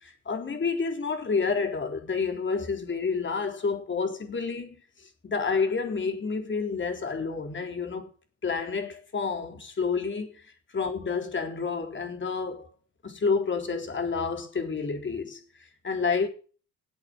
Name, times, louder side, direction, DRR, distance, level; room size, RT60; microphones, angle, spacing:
voice 1, 0.0-4.8 5.2-8.1 8.4-12.7 13.0-15.4 15.8-16.3, left 5 dB, 40° left, 3.8 m, -29 dB
14.0 x 8.3 x 6.2 m
cardioid pair, 90°, 30 cm